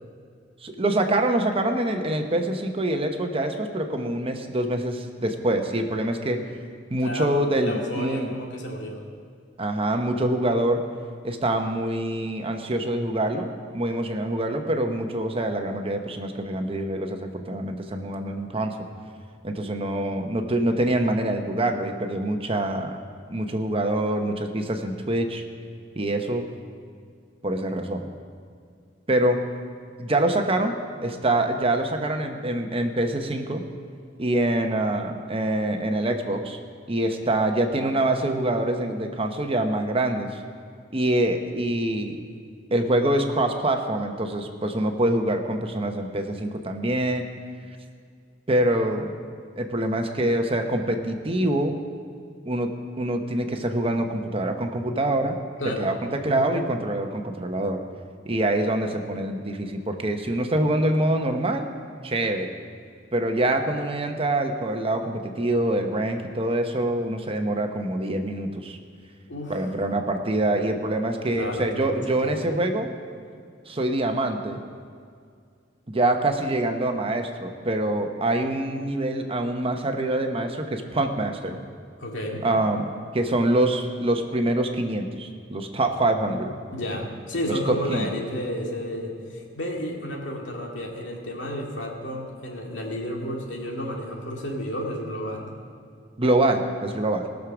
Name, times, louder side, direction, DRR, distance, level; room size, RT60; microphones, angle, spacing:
voice 1, 0.6-6.4 6.9-8.4 9.6-10.8 11.2-18.7 19.4-23.0 23.3-25.4 25.9-26.4 27.4-28.0 29.1-29.4 30.0-30.7 31.0-33.6 34.2-36.6 36.9-40.3 40.9-42.2 42.7-47.3 48.5-49.1 49.6-51.8 52.5-52.7 53.0-55.4 55.8-57.8 58.3-61.7 62.0-62.5 63.1-68.8 69.5-72.9 73.7-74.6 75.9-81.6 82.4-86.5 87.5-88.1 96.2-97.3, right 1 dB, 30° right, 5 dB, 0.9 m, -25 dB
voice 2, 7.0-9.0 55.6-56.5 69.3-69.6 71.3-72.5 82.0-82.5 86.7-95.5, equal, 90° left, -1 dB, 2.3 m, -32 dB
19.5 x 6.5 x 6.1 m, 2.2 s
head